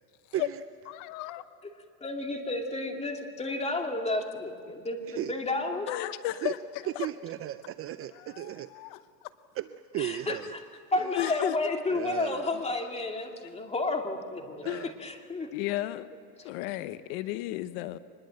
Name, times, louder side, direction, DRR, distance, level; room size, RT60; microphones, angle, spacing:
voice 1, 0.9-1.4 5.9-7.1 8.1-9.0 11.1-11.8 14.6-14.9 15.5-16.1 16.4-18.0, left 15 dB, 60° left, 13 dB, 1.0 m, -34 dB
voice 2, 2.0-5.9 10.0-10.6 10.9-14.6 15.0-15.5, left 2 dB, 15° left, 3 dB, 2.3 m, -31 dB
voice 3, 7.0-8.7 9.6-9.7 9.9-10.5 11.9-12.5 14.6-14.9, right 13 dB, 30° right, 12 dB, 0.5 m, -35 dB
24.5 x 21.0 x 7.8 m, 2.3 s
supercardioid pair, 135°, 47 cm